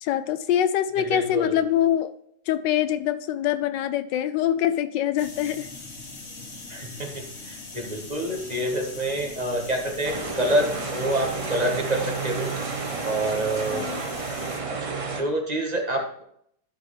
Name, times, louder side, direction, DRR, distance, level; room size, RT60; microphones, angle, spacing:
voice 1, 0.0-2.1 2.5-5.7 13.7-14.0, left 11 dB, 85° left, 11 dB, 1.2 m, -24 dB
voice 2, 1.0-1.6 6.7-12.5 13.0-13.9 15.1-16.2, right 1 dB, 25° right, 2 dB, 1.2 m, -27 dB
sound 1, 5.2-14.6, left 3 dB, 40° left, 1.4 m, -41 dB
sound 2, 10.0-15.2, right 4 dB, 55° right, 0.3 m, -31 dB
12.5 x 5.7 x 3.2 m, 0.68 s
omnidirectional pair, 1.9 m